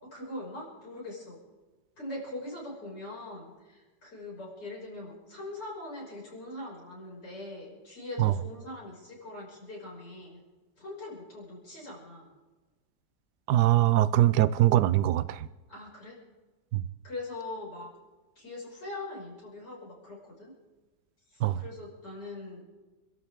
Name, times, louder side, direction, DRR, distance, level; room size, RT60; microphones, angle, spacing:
voice 1, 0.0-1.4 2.0-10.4 10.8-12.3 15.7-16.2 17.0-17.9 18.4-20.5 21.3-22.6, left 2 dB, 80° left, 6.9 m, -42 dB
voice 2, 13.5-15.5 16.7-16.8 21.4-21.6, right 14 dB, 75° right, 1.2 m, -22 dB
28.5 x 13.0 x 3.8 m
omnidirectional pair, 1.8 m